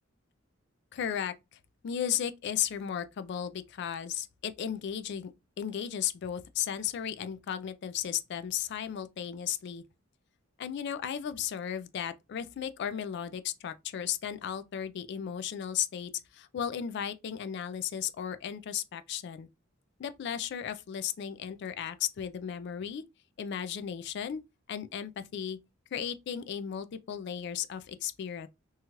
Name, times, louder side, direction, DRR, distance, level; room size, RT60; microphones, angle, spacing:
voice 1, 0.9-1.3 1.8-5.3 5.6-9.8 10.6-19.5 20.0-23.0 23.4-24.4 24.7-25.6 25.9-28.5, left 9 dB, 55° left, 0.3 m, -35 dB
2.9 x 2.3 x 2.8 m
head